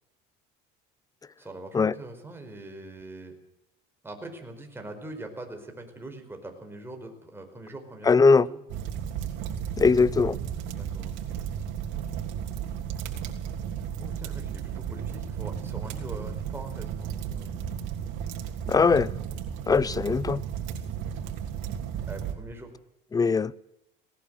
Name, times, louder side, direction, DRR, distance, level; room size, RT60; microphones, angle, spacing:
voice 1, 1.4-3.3 4.0-8.6 10.8-11.3 14.0-17.6 22.0-22.7, right 2 dB, 10° right, 4.8 m, -42 dB
voice 2, 8.1-8.5 9.8-10.4 18.7-19.1 19.7-20.4 23.1-23.5, left 4 dB, 20° left, 0.6 m, -20 dB
sound 1, 8.7-22.4, right 8 dB, 75° right, 3.2 m, -34 dB
19.0 x 18.0 x 7.8 m
cardioid pair, 120°, 20 cm